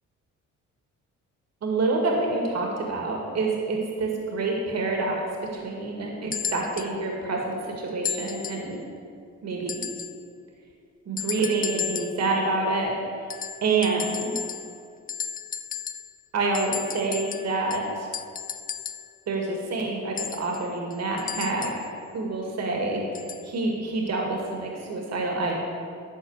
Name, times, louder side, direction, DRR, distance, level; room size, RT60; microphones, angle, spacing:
voice 1, 1.6-5.2 5.5-8.8 9.4-9.8 11.1-12.9 13.6-14.3 16.3-18.1 19.3-21.7 22.1-23.0 23.4-25.5, right 3 dB, 60° right, 0 dB, 2.1 m, -27 dB
sound 1, 6.3-6.9 8.0-8.7 9.7-10.2 11.2-12.3 13.3-14.8 15.1-16.2 16.5-19.1 20.2-21.9 23.1-23.5 24.4-24.5, left 7 dB, 30° left, 0.4 m, -34 dB
12.5 x 4.3 x 7.9 m, 2.3 s
cardioid pair, 90°, 30 cm